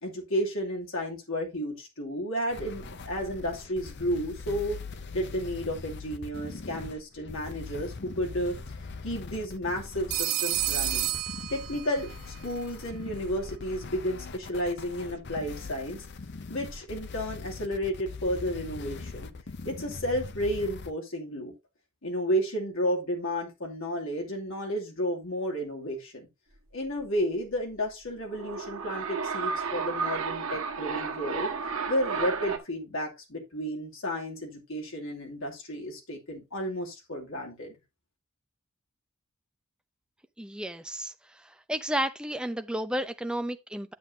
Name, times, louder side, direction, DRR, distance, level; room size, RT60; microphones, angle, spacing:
voice 1, 0.0-4.8 5.1-8.6 9.0-11.1 11.5-16.0 16.5-19.3 19.6-21.5 22.0-26.3 26.7-31.5 31.9-37.7, equal, 70° left, 2.6 m, -32 dB
sound 1, 2.5-20.9, left 4 dB, 50° left, 0.6 m, -41 dB
Telephone, 10.1-12.2, right 14 dB, 90° right, 0.7 m, -30 dB
sound 2, 28.2-32.6, right 5 dB, 75° right, 1.4 m, -32 dB
voice 2, 40.4-41.1 41.7-43.9, equal, 5° right, 0.5 m, -32 dB
9.4 x 7.7 x 2.7 m
head